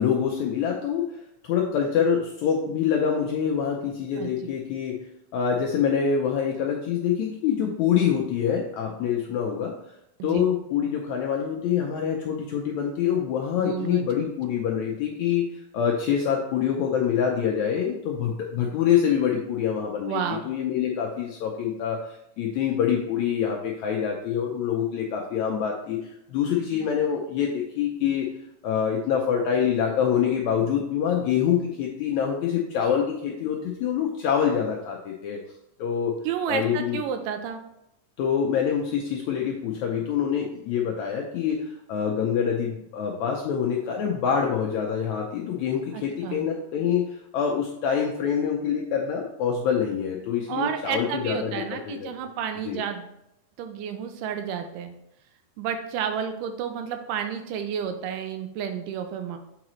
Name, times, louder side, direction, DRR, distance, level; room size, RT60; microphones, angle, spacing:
voice 1, 0.0-5.0 5.3-9.8 10.2-28.3 28.6-35.4 35.8-36.1 36.5-37.0 38.2-52.1 52.7-52.8, left 8 dB, 80° left, 0 dB, 1.6 m, -25 dB
voice 2, 13.6-14.1 20.1-20.5 36.2-37.6 45.9-46.5 50.5-53.1 53.6-54.9 55.6-59.4, right 8 dB, 80° right, 7 dB, 2.1 m, -31 dB
7.5 x 4.9 x 3.0 m, 0.81 s
omnidirectional pair, 3.9 m